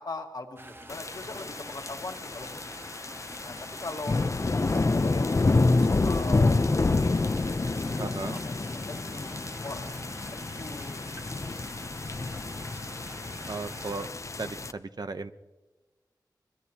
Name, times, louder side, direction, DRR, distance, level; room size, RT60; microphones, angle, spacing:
voice 1, 0.0-2.7 3.4-4.2 4.7-7.1 7.4-10.0 10.3-11.8, left 3 dB, 60° left, 4 dB, 1.7 m, -41 dB
sound 1, 0.6-14.1, right 2 dB, 30° right, 1.0 m, -48 dB
sound 2, 0.9-14.7, left 3 dB, 40° left, 0.6 m, -28 dB
voice 2, 8.0-8.4 13.5-14.1 14.4-15.3, right 3 dB, 60° right, 10 dB, 0.8 m, -35 dB
23.5 x 21.0 x 2.9 m, 1.2 s
wide cardioid pair, 60°, 8 cm